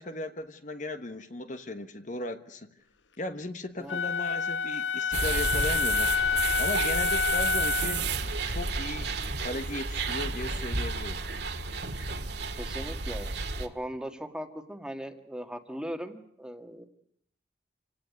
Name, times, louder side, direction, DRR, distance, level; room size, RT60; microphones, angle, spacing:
voice 1, 0.0-2.7 3.2-6.1 6.6-8.1 8.4-11.2, left 2 dB, 45° left, 9 dB, 1.3 m, -37 dB
Wind instrument woodwind instrument, 3.9-8.0, left 6 dB, 85° left, 1.1 m, -28 dB
sound 1, 5.1-13.7, right 4 dB, 60° right, 2.0 m, -32 dB
voice 2, 12.6-13.3 13.6-16.8, equal, 5° right, 6 dB, 1.7 m, -38 dB
28.0 x 17.5 x 9.5 m, 0.71 s
head